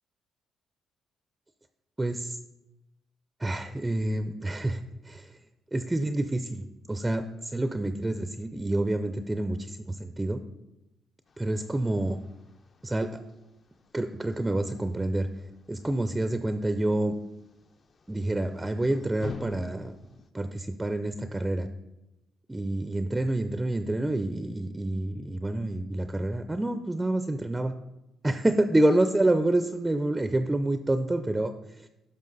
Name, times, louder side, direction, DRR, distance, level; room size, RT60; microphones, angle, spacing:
voice 1, 2.0-2.4 3.4-5.4 5.7-10.4 11.4-12.2 12.8-13.2 13.9-17.2 18.1-20.0 20.3-21.7 22.5-27.7 28.2-31.9, right 1 dB, 15° right, 9 dB, 0.4 m, -28 dB
sound 1, 11.3-20.3, left 5 dB, 45° left, 0.7 m, -49 dB
10.5 x 6.0 x 4.0 m, 0.95 s
cardioid pair, 90°, 0 cm